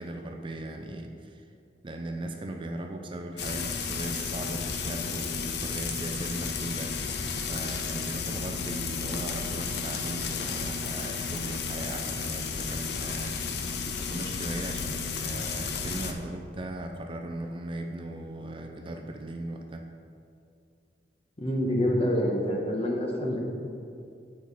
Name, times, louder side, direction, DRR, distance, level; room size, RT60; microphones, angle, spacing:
voice 1, 0.0-1.5 1.8-7.2 7.5-19.9, right 1 dB, 30° right, 4 dB, 0.4 m, -38 dB
Frying (food), 3.4-16.1, left 5 dB, 65° left, 0.6 m, -33 dB
voice 2, 21.4-23.4, equal, 35° left, 0 dB, 1.1 m, -27 dB
8.5 x 5.7 x 4.1 m, 2.5 s
head